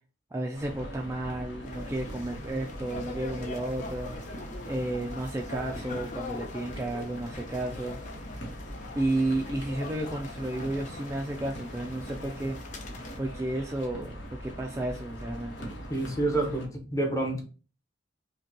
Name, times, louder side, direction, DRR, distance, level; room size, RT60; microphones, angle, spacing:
voice 1, 0.3-4.2 4.7-8.0 8.9-12.6 12.9-15.7, right 1 dB, 15° right, 1 dB, 0.3 m, -32 dB
sound 1, 0.5-16.7, equal, 70° left, 1.1 m, -41 dB
sound 2, 1.6-13.2, left 3 dB, 40° left, 0.6 m, -43 dB
voice 2, 15.9-17.4, right 2 dB, 15° left, 1 dB, 0.9 m, -28 dB
5.0 x 2.2 x 2.7 m, 0.36 s
head